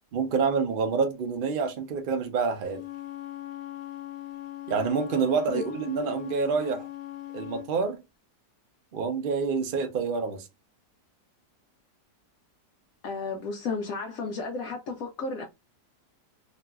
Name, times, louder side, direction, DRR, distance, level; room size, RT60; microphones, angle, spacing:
voice 1, 0.1-2.8 4.7-6.9 7.3-8.0 8.9-10.5, right 5 dB, 80° right, 0.4 m, -27 dB
Wind instrument woodwind instrument, 2.6-7.7, left 14 dB, 85° left, 1.2 m, -40 dB
voice 2, 13.0-15.5, left 3 dB, 70° left, 0.8 m, -33 dB
2.9 x 2.5 x 2.3 m
omnidirectional pair, 1.8 m